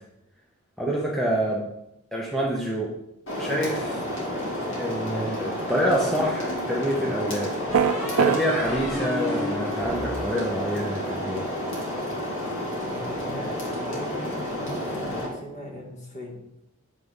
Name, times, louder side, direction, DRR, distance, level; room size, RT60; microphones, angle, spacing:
voice 1, 0.8-1.7 2.1-2.9 3.4-3.9 4.8-7.8 8.2-11.5, equal, ahead, -3 dB, 0.8 m, -27 dB
sound 1, 3.3-15.3, left 1 dB, 55° left, 2.4 m, -30 dB
sound 2, 5.9-6.7 7.7-11.0, left 2 dB, 85° left, 2.1 m, -35 dB
sound 3, 7.7-8.4, right 7 dB, 75° right, 0.4 m, -20 dB
voice 2, 12.8-16.4, left 1 dB, 35° left, 0 dB, 1.5 m, -39 dB
8.1 x 4.2 x 5.1 m, 0.85 s
head